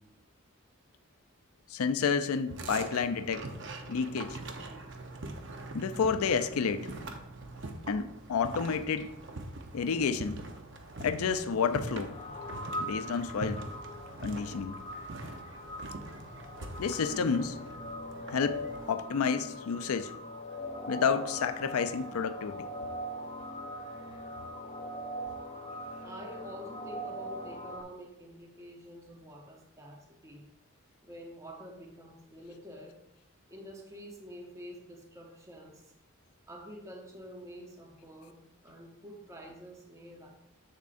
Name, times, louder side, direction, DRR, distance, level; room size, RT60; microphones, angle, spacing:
voice 1, 1.7-3.5 3.9-4.4 5.7-6.9 7.9-9.1 9.7-10.4 11.0-12.1 12.8-13.6 14.2-14.8 16.8-17.6 18.3-18.6 18.9-20.1 20.9-22.7, left 6 dB, 85° left, 10 dB, 0.4 m, -30 dB
sound 1, 2.5-18.9, right 2 dB, 60° right, 0.7 m, -43 dB
sound 2, 12.0-27.8, equal, 25° left, 0.5 m, -41 dB
voice 2, 26.0-30.5 31.0-33.0 33.5-35.9 36.5-38.4 38.6-40.3, equal, 15° right, 1 dB, 0.9 m, -48 dB
7.4 x 6.9 x 2.5 m, 0.84 s
head